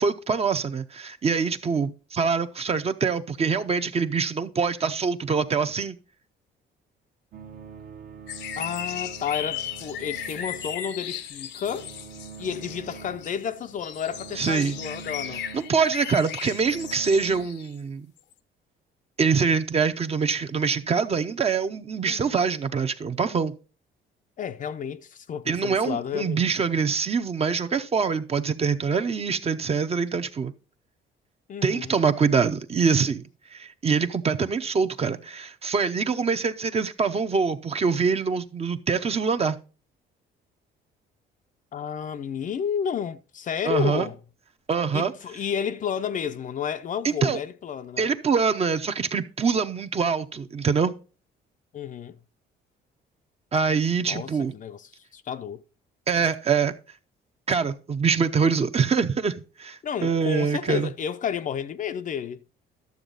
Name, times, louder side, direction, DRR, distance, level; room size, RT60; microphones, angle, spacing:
voice 1, 0.0-6.0 14.4-14.8 15.5-18.1 19.2-23.5 25.5-30.5 31.6-33.2 33.5-39.6 43.6-44.1 44.7-45.1 47.0-47.4 48.0-50.9 53.5-54.5 56.1-56.7 57.5-60.9, right 5 dB, 35° right, 0.8 m, -24 dB
sound 1, 7.3-17.4, right 6 dB, 50° right, 1.1 m, -44 dB
sound 2, 8.3-17.7 18.3-18.4, left 10 dB, 75° left, 0.9 m, -36 dB
voice 2, 8.6-11.9 12.4-15.4 22.1-22.4 24.4-26.4 31.5-31.9 41.7-44.2 44.9-48.1 51.7-52.2 54.1-55.6 56.2-56.3 59.8-62.4, left 8 dB, 45° left, 0.6 m, -31 dB
12.0 x 7.2 x 3.9 m
cardioid pair, 110°, 19 cm